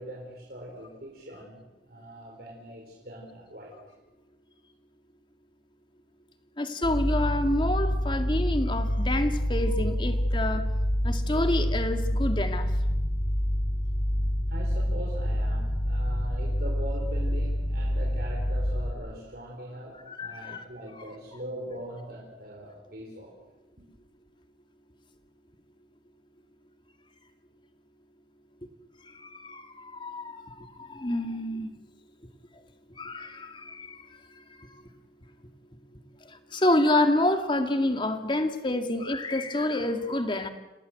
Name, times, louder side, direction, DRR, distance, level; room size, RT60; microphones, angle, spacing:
voice 1, 0.0-3.7 14.5-23.3, equal, 55° right, -2 dB, 4.6 m, -41 dB
voice 2, 6.6-10.7 11.0-12.7 20.1-20.6 29.1-31.7 33.0-34.0 36.3-40.5, left 1 dB, 25° left, 7 dB, 2.1 m, -28 dB
sound 1, 6.8-18.9, equal, 60° left, 4.8 m, -27 dB
28.0 x 19.0 x 8.0 m, 1.1 s
head